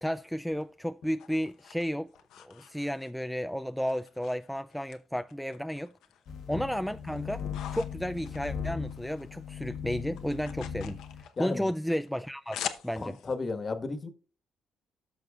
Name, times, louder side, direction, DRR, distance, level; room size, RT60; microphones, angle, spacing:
voice 1, 0.0-2.1 2.4-5.9 6.5-7.4 7.7-13.1, equal, ahead, 0.3 m, -33 dB
sound 1, 0.5-3.4 3.9-5.0 5.3-6.3 6.7-9.3 9.5-13.4, left 10 dB, 85° left, 0.8 m, -44 dB
sound 2, 6.3-11.2, left 7 dB, 70° left, 1.2 m, -38 dB
voice 2, 11.4-11.7 13.0-14.1, left 3 dB, 35° left, 1.4 m, -34 dB
13.5 x 6.2 x 2.4 m
cardioid pair, 90°, 0 cm